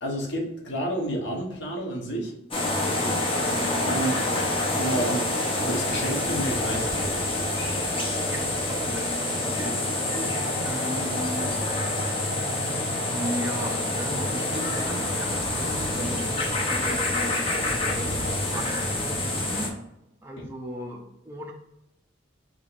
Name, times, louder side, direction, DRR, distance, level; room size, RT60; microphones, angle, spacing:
voice 1, 0.0-2.3 3.8-4.2 4.7-7.2 20.4-20.5, right 1 dB, 60° left, -1 dB, 1.0 m, -30 dB
sound 1, 2.5-19.7, left 2 dB, 25° left, 0.7 m, -27 dB
voice 2, 2.8-4.1 8.3-9.2 9.5-11.6 13.1-17.4 17.9-19.8 20.2-21.5, right 1 dB, 10° right, 0 dB, 0.4 m, -37 dB
4.9 x 2.9 x 2.5 m, 0.86 s
head